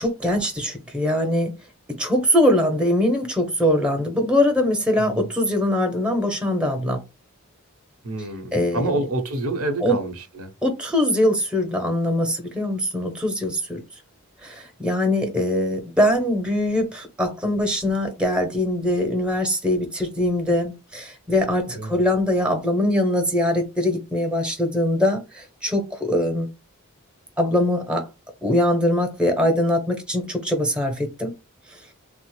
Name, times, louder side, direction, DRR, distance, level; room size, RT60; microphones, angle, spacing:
voice 1, 0.0-1.6 1.9-7.0 8.5-9.0 9.8-10.0 10.6-13.8 14.4-26.5 27.4-28.1 28.4-31.3, left 1 dB, 5° right, 0.7 m, -22 dB
voice 2, 8.0-10.5 21.7-21.9, right 2 dB, 90° right, 0.9 m, -27 dB
3.3 x 2.0 x 3.1 m
head